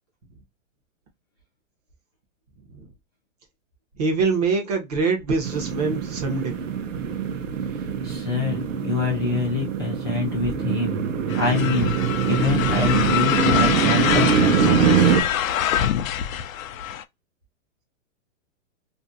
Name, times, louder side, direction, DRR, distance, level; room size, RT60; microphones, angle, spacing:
voice 1, 4.0-6.6, right 4 dB, 30° right, 0.6 m, -24 dB
sound 1, 5.4-15.2, right 7 dB, 70° right, 0.7 m, -23 dB
voice 2, 8.0-11.0 11.4-11.9 12.2-15.1, left 4 dB, 20° left, 0.4 m, -26 dB
sound 2, 11.3-17.0, left 10 dB, 85° left, 0.5 m, -25 dB
2.5 x 2.5 x 2.5 m
hypercardioid pair, 165°, 40 cm